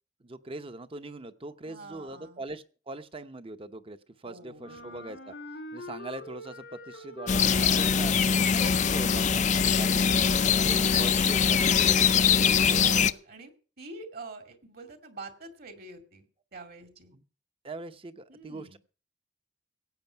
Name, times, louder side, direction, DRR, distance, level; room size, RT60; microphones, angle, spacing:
voice 1, 0.2-5.3 5.7-8.1 8.5-10.0 10.3-12.8 17.1-17.2 17.6-18.8, right 2 dB, 30° right, 11 dB, 0.9 m, -41 dB
voice 2, 1.6-2.4 4.2-5.0 9.8-10.2 10.9-11.6 12.2-16.3 16.5-17.1 18.3-18.8, right 3 dB, 55° right, 7 dB, 2.4 m, -46 dB
Wind instrument woodwind instrument, 4.6-9.6, left 1 dB, 90° left, 2.6 m, -44 dB
sound 1, 7.3-13.1, left 6 dB, 40° left, 0.5 m, -23 dB
16.5 x 8.7 x 5.8 m, 0.38 s
head